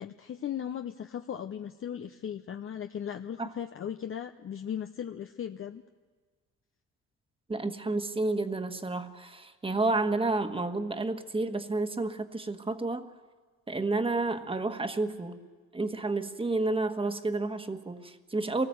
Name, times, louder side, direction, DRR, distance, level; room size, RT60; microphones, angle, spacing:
voice 1, 0.0-5.8, left 9 dB, 45° left, 7 dB, 0.8 m, -37 dB
voice 2, 7.5-13.1 13.7-15.4 15.7-18.7, right 2 dB, 20° right, 8 dB, 1.5 m, -30 dB
25.0 x 18.5 x 7.9 m, 1.5 s
cardioid pair, 90°, 30 cm